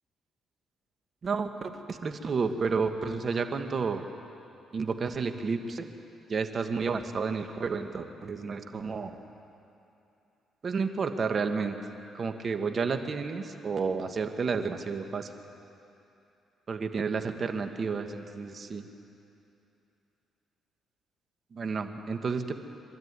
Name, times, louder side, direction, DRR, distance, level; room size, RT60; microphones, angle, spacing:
voice 1, 1.2-4.0 4.7-5.9 6.3-9.1 10.6-11.8 12.1-15.3 16.7-18.9 21.5-22.6, right 5 dB, 45° right, 7 dB, 1.5 m, -31 dB
25.0 x 12.5 x 9.7 m, 2.8 s
cardioid pair, 90°, 0 cm